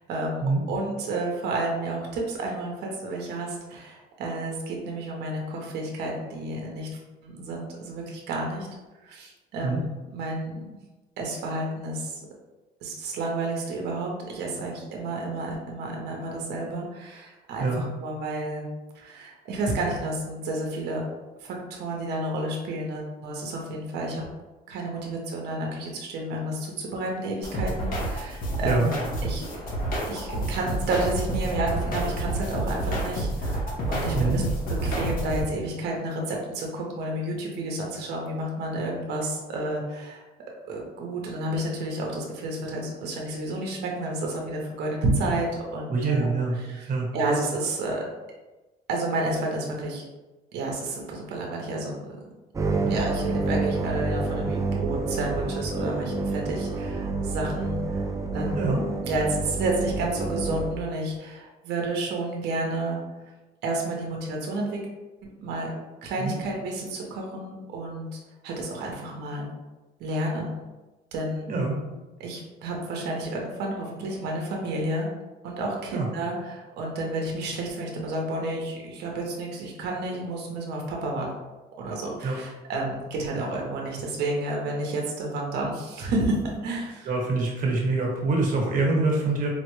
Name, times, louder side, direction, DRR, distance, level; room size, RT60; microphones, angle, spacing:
voice 1, 0.0-0.4 0.7-6.9 7.2-8.7 9.0-9.8 10.1-10.6 11.2-12.2 12.8-18.7 19.0-21.0 21.4-24.2 24.7-28.9 29.2-29.6 30.1-34.4 34.8-40.3 40.7-46.3 46.6-46.8 47.1-48.0 48.9-50.0 50.5-52.2 52.9-58.0 58.3-58.7 59.1-63.0 63.6-64.8 65.4-65.7 66.0-68.1 68.4-69.5 70.0-70.6 71.1-71.5 72.2-75.1 75.4-81.3 81.8-87.1, right 2 dB, 80° right, 0 dB, 0.8 m, -30 dB
sound 1, 27.4-35.4, right 1 dB, 55° left, 0.9 m, -29 dB
voice 2, 34.1-34.4 45.9-46.6 46.9-47.1 52.8-52.9 58.5-58.8 66.2-66.3 71.5-71.8 75.9-76.1 82.2-82.4 87.0-89.5, right 3 dB, 55° right, -1 dB, 1.1 m, -25 dB
sound 2, 52.5-60.7, right 3 dB, 20° right, 0.4 m, -28 dB
4.2 x 2.1 x 3.1 m, 1.1 s
cardioid pair, 110°, 17 cm